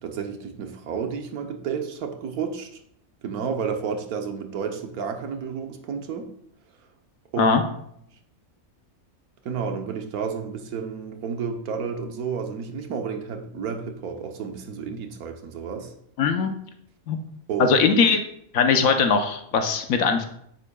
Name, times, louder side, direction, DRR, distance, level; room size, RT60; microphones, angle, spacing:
voice 1, 0.0-2.7 3.2-6.3 7.3-7.6 9.4-15.9 17.5-18.0, right 6 dB, 80° right, 5 dB, 1.4 m, -31 dB
voice 2, 16.2-16.5 17.1-17.2 17.6-18.2 18.5-20.3, left 5 dB, 70° left, 6 dB, 1.2 m, -20 dB
9.3 x 7.7 x 2.3 m, 0.71 s
omnidirectional pair, 1.5 m